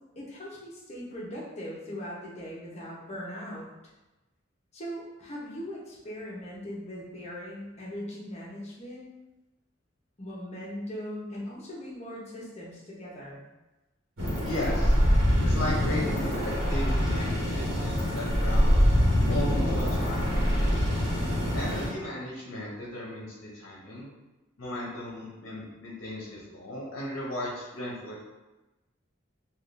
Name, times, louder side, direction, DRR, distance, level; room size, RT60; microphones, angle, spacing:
voice 1, 0.2-3.7 4.7-9.1 10.2-13.4, equal, 35° left, -5 dB, 0.8 m, -39 dB
sound 1, 14.2-21.9, equal, 80° right, 1.1 m, -24 dB
voice 2, 14.4-14.9 15.4-18.8 19.3-20.6 21.5-24.1 24.6-28.2, left 1 dB, 65° left, -5 dB, 0.7 m, -36 dB
3.5 x 2.4 x 2.5 m, 1.1 s
head